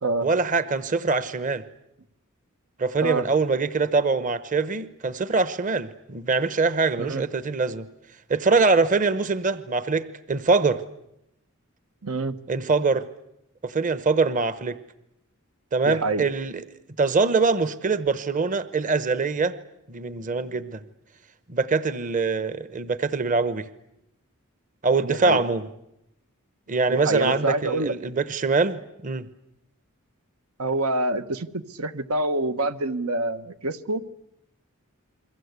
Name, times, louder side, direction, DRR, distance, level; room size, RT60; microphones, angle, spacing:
voice 1, 0.2-1.6 2.8-7.9 8.3-10.0 10.3-10.8 12.5-13.0 13.6-14.8 15.7-16.6 17.0-19.5 19.9-20.8 21.5-23.7 24.8-25.7 26.7-29.3, right 4 dB, 35° right, 13 dB, 0.9 m, -23 dB
voice 2, 12.0-12.4 15.8-16.3 25.0-25.4 26.9-27.9 30.6-34.0, right 2 dB, 90° right, 10 dB, 1.3 m, -26 dB
29.5 x 22.5 x 8.2 m, 0.83 s
head